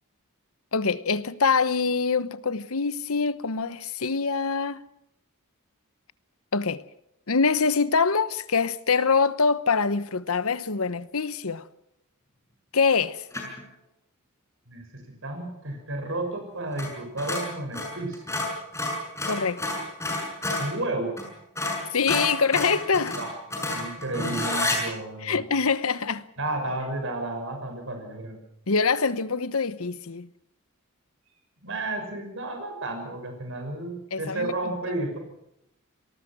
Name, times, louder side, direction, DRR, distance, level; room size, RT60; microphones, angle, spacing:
voice 1, 0.7-4.8 6.5-6.8 7.3-11.7 12.7-13.3 19.3-19.8 21.9-23.2 25.2-26.3 28.7-30.3 34.1-34.5 34.9-35.0, left 5 dB, 75° left, 1.0 m, -24 dB
sound 1, 13.3-13.6 16.7-16.9 17.2-20.7 21.2-21.3 21.6-24.8, left 2 dB, 15° left, 6.8 m, -29 dB
voice 2, 14.7-18.4 20.6-21.2 23.0-23.3 23.6-25.4 26.4-28.4 31.6-35.2, right 2 dB, 60° right, 6.3 m, -32 dB
27.5 x 19.5 x 6.1 m
head